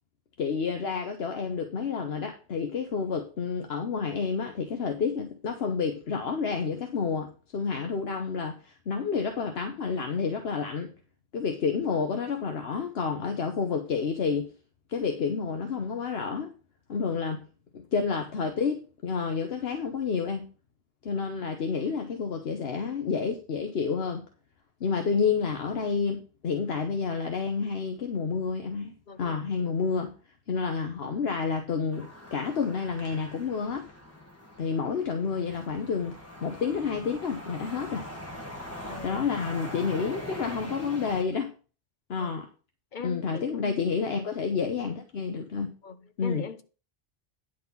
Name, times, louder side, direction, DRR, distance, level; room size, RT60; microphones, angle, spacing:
voice 1, 0.4-10.9 11.3-14.5 14.9-16.5 16.9-17.5 17.7-20.5 21.0-24.2 24.8-28.9 29.2-30.1 30.5-33.9 34.6-38.1 39.0-41.5 42.1-42.5 43.0-45.7 46.2-46.5, left 5 dB, 70° left, 1.2 m, -29 dB
voice 2, 29.1-29.4 38.9-39.2 42.2-42.3 42.9-44.0 45.8-46.6, left 6 dB, 50° left, 1.0 m, -41 dB
sound 1, 31.9-41.2, left 1 dB, 15° left, 1.5 m, -42 dB
10.0 x 4.0 x 7.0 m
omnidirectional pair, 1.1 m